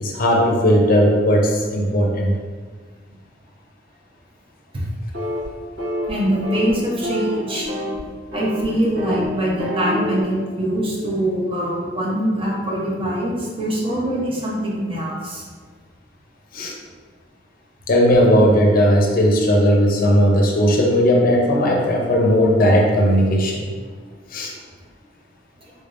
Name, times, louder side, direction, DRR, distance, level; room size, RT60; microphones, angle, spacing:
voice 1, 0.0-2.3 16.5-16.7 17.9-23.7 24.3-24.5, equal, 50° left, -1 dB, 0.6 m, -16 dB
sound 1, 5.1-5.5 5.8-6.1 6.4-6.7 7.0-8.0 8.3-8.6 9.0-9.3 9.6-10.2, equal, 75° right, 1.4 m, -26 dB
voice 2, 6.1-8.0 8.3-15.4 25.6-25.7, right 1 dB, 30° right, -4 dB, 0.7 m, -23 dB
3.9 x 3.5 x 2.5 m, 1.5 s
head